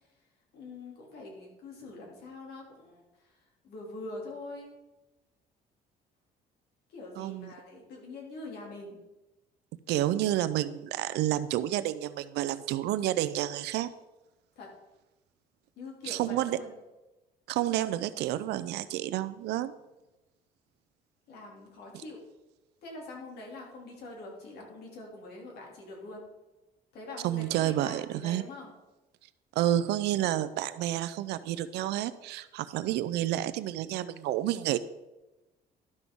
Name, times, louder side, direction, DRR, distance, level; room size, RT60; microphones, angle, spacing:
voice 1, 0.5-4.7 6.9-9.0 14.6-14.7 15.8-16.7 21.3-22.2 22.8-26.2 26.9-28.7, left 2 dB, 70° left, -1 dB, 2.8 m, -44 dB
voice 2, 7.2-7.5 9.9-13.9 16.0-16.6 17.5-19.7 27.2-28.4 29.6-34.8, right 13 dB, 80° right, 14 dB, 0.5 m, -30 dB
12.0 x 6.0 x 3.7 m, 1.0 s
cardioid pair, 110°, 17 cm